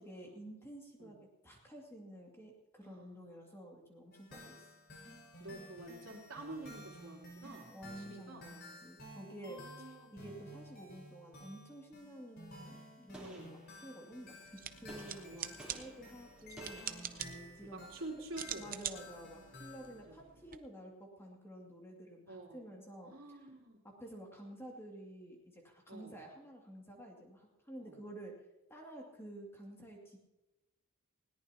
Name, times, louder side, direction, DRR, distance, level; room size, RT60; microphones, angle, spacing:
voice 1, 0.0-4.7 7.7-17.0 17.6-18.2 18.6-23.1 23.8-28.4 28.7-30.2, right 1 dB, 10° left, -1 dB, 2.4 m, -51 dB
sound 1, 4.1-20.0, left 1 dB, 45° left, 5.6 m, -54 dB
voice 2, 5.2-8.5 9.4-10.1 13.2-13.6 15.2-16.0 17.1-18.7 19.9-20.2 22.3-22.7 23.0-23.8 25.9-26.2 27.8-28.0, right 2 dB, 70° right, 0 dB, 3.3 m, -49 dB
Gunshot gunfire, 13.1-14.2 14.9-17.7, right 1 dB, 5° right, 3.8 m, -55 dB
sound 2, 14.5-20.6, right 10 dB, 40° right, 0.7 m, -46 dB
20.0 x 18.0 x 2.9 m, 1.0 s
head